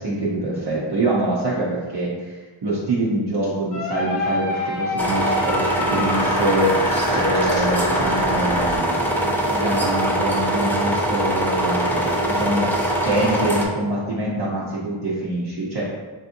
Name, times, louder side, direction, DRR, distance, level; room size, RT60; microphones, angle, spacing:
voice 1, 0.0-2.3 2.6-15.8, right 1 dB, 55° right, -6 dB, 0.8 m, -25 dB
sound 1, 3.7-8.8, left 2 dB, 40° left, 0.8 m, -27 dB
sound 2, 5.0-13.6, right 1 dB, 5° left, 0.4 m, -22 dB
5.4 x 2.8 x 2.6 m, 1.3 s
wide cardioid pair, 135°, 49 cm